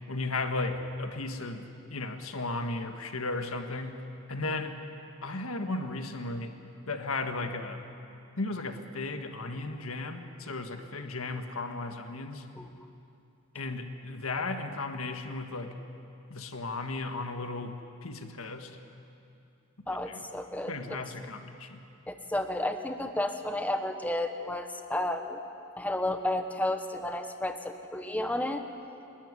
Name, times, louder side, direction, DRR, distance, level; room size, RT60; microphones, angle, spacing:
voice 1, 0.1-4.7 5.2-6.5 6.9-7.8 8.4-12.4 13.5-15.7 16.3-17.8 18.0-18.8 20.1-20.2 20.7-21.8, left 2 dB, 85° left, 6 dB, 1.6 m, -35 dB
voice 2, 19.9-21.0 22.1-25.4 25.8-28.6, left 1 dB, 5° left, 6 dB, 1.1 m, -32 dB
28.0 x 12.5 x 9.8 m, 2.7 s
head